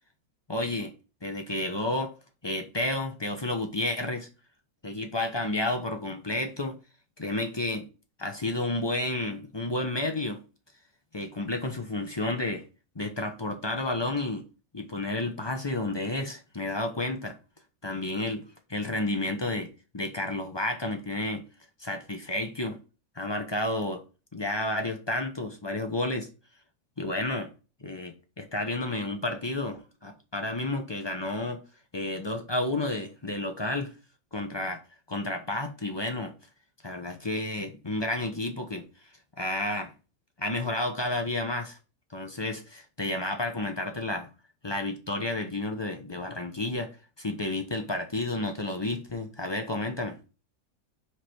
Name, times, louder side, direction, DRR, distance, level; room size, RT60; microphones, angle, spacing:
voice 1, 0.5-0.9 1.2-2.1 2.4-4.3 4.8-6.8 7.2-7.9 8.2-10.4 11.1-12.6 12.9-14.4 14.7-17.4 17.8-18.4 18.7-21.4 21.8-22.8 23.2-24.0 24.3-26.3 27.0-27.5 27.8-31.6 31.9-33.9 34.3-34.8 35.1-36.3 36.8-38.9 39.4-39.9 40.4-41.8 42.1-44.3 44.6-46.9 47.2-50.2, left 2 dB, 25° left, 0.7 m, -31 dB
5.0 x 4.8 x 4.5 m
omnidirectional pair, 1.6 m